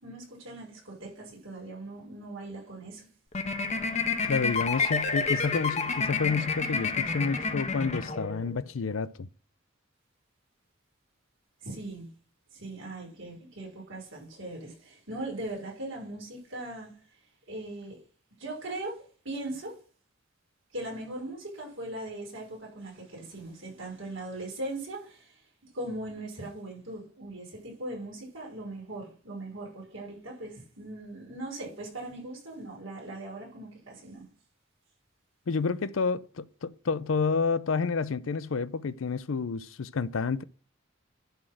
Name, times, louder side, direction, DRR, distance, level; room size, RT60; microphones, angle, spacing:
voice 1, 0.0-3.1 11.6-12.1 12.5-16.9 17.5-18.0 18.4-19.7 20.7-25.4 25.7-34.2, right 1 dB, 70° right, 5.5 m, -39 dB
sound 1, 3.3-8.6, left 4 dB, 35° left, 1.1 m, -29 dB
voice 2, 4.2-9.3 35.5-40.4, left 5 dB, 75° left, 0.5 m, -29 dB
11.0 x 4.3 x 7.6 m
head